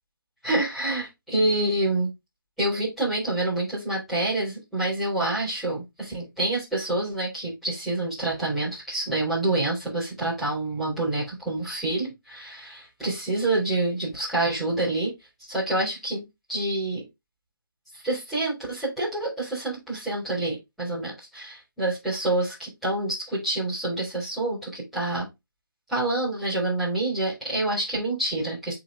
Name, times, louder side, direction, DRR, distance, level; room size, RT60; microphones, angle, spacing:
voice 1, 0.4-2.1 2.6-15.1 15.5-17.0 17.9-25.3 25.9-28.8, right 2 dB, ahead, 3.9 m, -27 dB
7.7 x 4.1 x 3.6 m
figure-of-eight pair, 155°, 12 cm